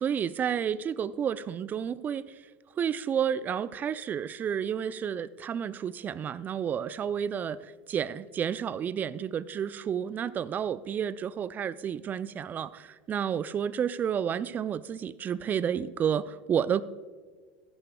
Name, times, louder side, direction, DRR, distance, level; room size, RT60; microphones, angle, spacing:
voice 1, 0.0-2.2 2.8-16.8, right 8 dB, 30° right, 0.4 m, -31 dB
14.5 x 11.5 x 2.3 m
hypercardioid pair, 90°, 6 cm